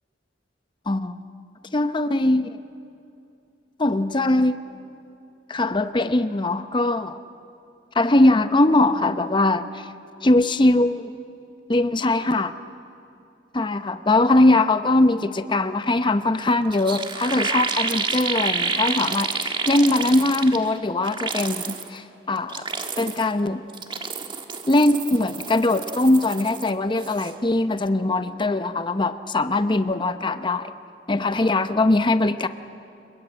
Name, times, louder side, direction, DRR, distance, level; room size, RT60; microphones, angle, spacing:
voice 1, 0.9-1.2 1.7-2.6 3.8-4.6 5.5-7.2 7.9-9.9 10.2-11.1 11.7-12.5 13.5-22.7 23.0-23.6 24.7-30.7 31.1-32.5, left 2 dB, 25° left, 10 dB, 0.7 m, -21 dB
sound 1, 16.4-16.5 16.7-20.7 21.0-21.9 22.4-23.3 23.7-26.7 27.0-27.3, right 4 dB, 30° right, 1.5 m, -29 dB
26.5 x 22.5 x 8.9 m, 2.7 s
head